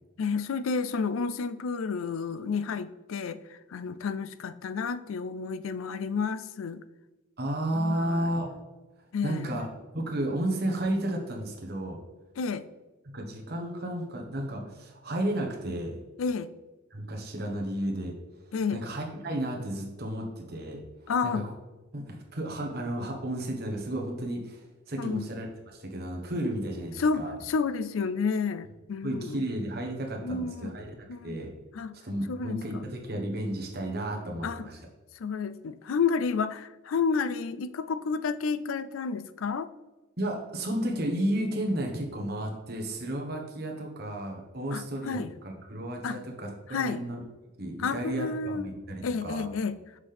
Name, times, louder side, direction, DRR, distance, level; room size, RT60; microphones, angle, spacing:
voice 1, 0.2-6.8 7.7-8.3 9.1-9.6 12.4-12.6 16.2-16.5 18.5-18.8 21.1-21.4 25.0-25.2 27.0-29.4 30.2-30.7 31.1-31.4 31.7-31.9 32.3-32.6 34.4-34.7 35.2-39.7 44.7-45.3 46.0-46.2 46.7-47.0 47.8-48.7 49.0-49.8, left 5 dB, 85° left, 13 dB, 0.4 m, -30 dB
voice 2, 7.4-8.5 9.2-9.7 9.9-12.0 13.1-16.0 16.9-18.1 18.7-21.5 21.9-27.4 29.0-30.9 31.2-31.5 32.0-34.8 40.2-45.2 45.4-47.2 47.6-49.4, right 1 dB, 50° right, 1 dB, 1.2 m, -33 dB
6.3 x 5.7 x 3.4 m, 1.1 s
head